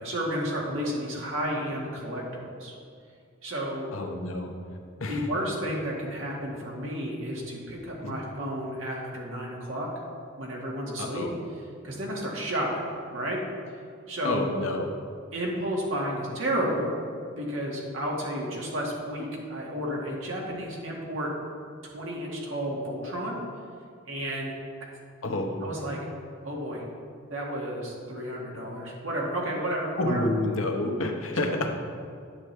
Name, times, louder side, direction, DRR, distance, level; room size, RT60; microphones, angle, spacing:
voice 1, 0.0-2.7 3.4-3.9 5.0-9.9 10.4-11.3 11.8-12.8 13.1-13.4 14.1-14.5 15.3-16.9 17.4-21.3 21.8-23.4 24.1-24.5 25.6-26.0 26.4-26.8 27.3-30.3 31.4-31.6, equal, 75° right, -3 dB, 1.8 m, -32 dB
voice 2, 3.9-4.5 5.0-5.2 8.0-8.2 11.0-11.3 14.2-14.9 25.2-25.7 30.0-31.7, left 2 dB, 90° left, 3 dB, 1.0 m, -29 dB
9.9 x 7.6 x 3.3 m, 2.3 s
head